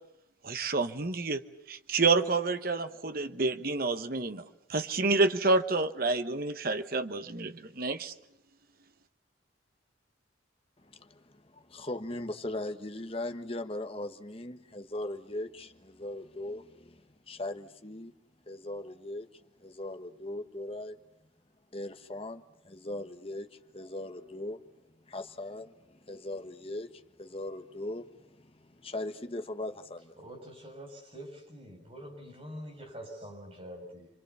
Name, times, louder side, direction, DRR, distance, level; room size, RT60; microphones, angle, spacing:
voice 1, 0.4-1.4 1.7-4.4 4.7-8.1, right 3 dB, 50° right, 1.1 m, -28 dB
voice 2, 10.8-18.1 18.5-21.0 21.7-24.6 25.1-30.2, left 1 dB, 30° left, 1.4 m, -39 dB
voice 3, 30.2-34.1, equal, 30° right, 6.8 m, -45 dB
29.5 x 24.0 x 7.1 m
head